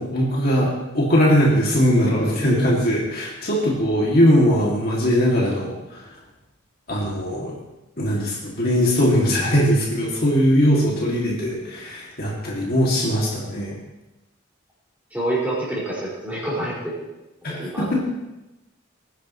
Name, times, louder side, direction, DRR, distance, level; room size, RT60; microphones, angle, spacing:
voice 1, 0.0-6.2 6.9-7.6 8.0-13.8 17.4-18.0, equal, 50° left, -4 dB, 2.6 m, -20 dB
voice 2, 15.1-17.1 17.5-17.9, right 1 dB, 10° right, -7 dB, 5.6 m, -27 dB
21.0 x 10.5 x 3.2 m, 0.99 s
head